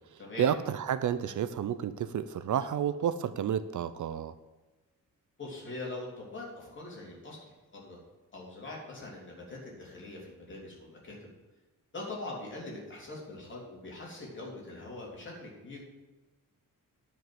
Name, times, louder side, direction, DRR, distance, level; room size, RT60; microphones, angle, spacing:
voice 1, 0.1-4.3, right 9 dB, 60° right, 13 dB, 0.5 m, -31 dB
voice 2, 5.4-8.0 8.3-11.3 11.9-15.8, left 2 dB, 35° left, -3 dB, 3.3 m, -43 dB
10.0 x 5.3 x 7.7 m, 1.2 s
wide cardioid pair, 170°, 34 cm